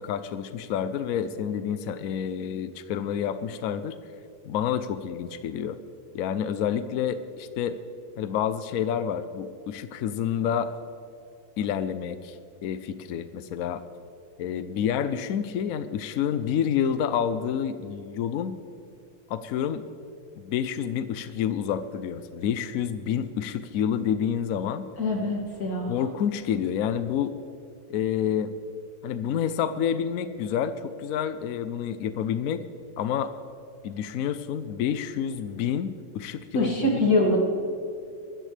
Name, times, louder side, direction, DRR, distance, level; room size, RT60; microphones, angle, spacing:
voice 1, 0.0-4.0 4.4-5.8 6.1-7.8 8.2-10.7 11.6-13.8 14.4-18.6 19.3-19.8 20.4-24.9 25.9-27.4 27.9-28.5 29.0-32.6 33.0-33.3 33.8-37.2, left 8 dB, 70° left, 11 dB, 0.8 m, -28 dB
voice 2, 25.0-25.9 36.5-37.4, left 2 dB, 50° left, -1 dB, 3.1 m, -24 dB
22.5 x 14.0 x 3.4 m, 2.6 s
omnidirectional pair, 2.1 m